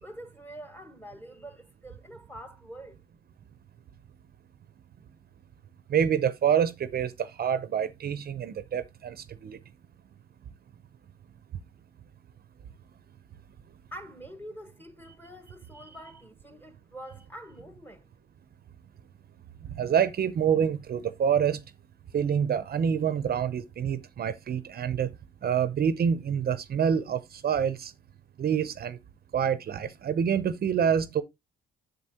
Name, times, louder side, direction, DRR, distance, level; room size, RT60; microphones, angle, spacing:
voice 1, 0.0-3.0 13.9-18.1, equal, 10° left, 1.5 m, -45 dB
voice 2, 5.9-9.6 19.7-21.6 22.1-25.1 25.4-27.9 28.4-29.0 29.3-31.2, right 8 dB, 50° right, 0.7 m, -27 dB
7.6 x 7.0 x 2.8 m
cardioid pair, 90°, 20 cm